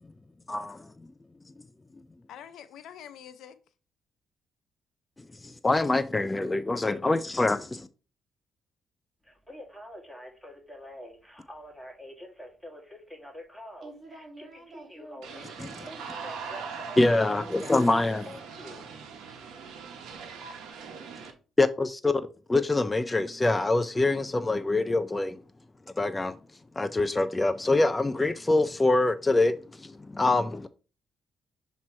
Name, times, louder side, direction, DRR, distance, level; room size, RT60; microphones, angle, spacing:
voice 1, 0.5-0.9 5.4-7.9 15.6-15.7 17.0-18.3 21.6-22.2 22.5-25.4 26.0-26.4 26.8-30.7, left 2 dB, 20° left, 0.4 m, -25 dB
voice 2, 2.3-3.6, left 9 dB, 80° left, 0.7 m, -45 dB
Telephone, 9.3-18.8 20.4-20.5, equal, 5° right, 1.8 m, -46 dB
voice 3, 13.8-17.3, right 2 dB, 45° right, 1.9 m, -49 dB
sound 1, 15.2-21.3, right 6 dB, 85° right, 1.1 m, -41 dB
7.2 x 3.0 x 4.4 m
cardioid pair, 90°, 0 cm